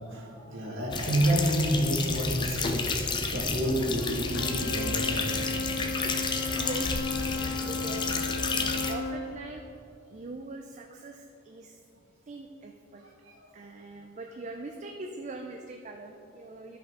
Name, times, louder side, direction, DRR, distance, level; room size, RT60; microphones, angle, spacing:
voice 1, 0.0-2.9 3.3-5.7 7.5-7.6 13.2-13.3, right 1 dB, 80° right, -3 dB, 1.6 m, -29 dB
sound 1, 0.9-8.9, left 4 dB, 25° left, 0.5 m, -31 dB
sound 2, 3.8-8.9, left 2 dB, 55° left, 0.8 m, -47 dB
Wind instrument woodwind instrument, 4.2-9.2, left 3 dB, 75° left, 1.3 m, -34 dB
voice 2, 5.6-7.0 7.6-9.8 10.1-11.8 12.3-13.0 13.5-16.8, right 2 dB, 35° right, 3 dB, 0.4 m, -42 dB
12.5 x 5.5 x 3.6 m, 2.6 s
head